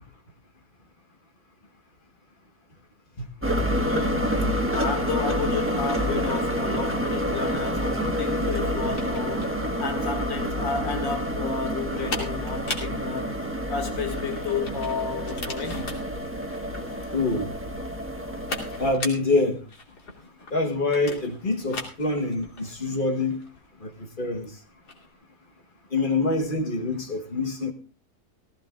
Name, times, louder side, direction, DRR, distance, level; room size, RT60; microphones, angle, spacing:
sound 1, 3.4-18.9, equal, 10° right, 1.2 m, -28 dB
voice 1, 3.8-4.4 4.7-13.3 13.7-15.8 26.0-26.1, left 5 dB, 80° left, 2.9 m, -32 dB
sound 2, 8.7-25.1, left 2 dB, 60° left, 3.0 m, -40 dB
voice 2, 17.1-17.5 18.8-19.6 20.5-23.4 23.8-23.9 24.2-24.5 25.9-27.7, left 3 dB, 30° left, 1.3 m, -25 dB
17.0 x 16.0 x 2.4 m
omnidirectional pair, 2.0 m